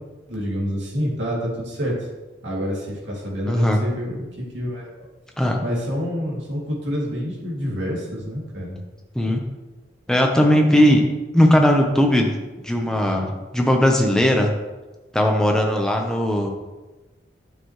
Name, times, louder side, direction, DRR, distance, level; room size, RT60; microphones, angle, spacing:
voice 1, 0.3-1.9 2.4-4.2 4.5-5.0 5.6-8.9, equal, 85° right, -4 dB, 2.5 m, -27 dB
voice 2, 3.5-3.8 5.4-5.6 9.1-9.4 10.1-11.0 11.3-12.3 12.6-14.5 15.1-16.5, equal, 5° left, 1 dB, 0.9 m, -18 dB
9.4 x 6.6 x 3.2 m, 1.2 s
head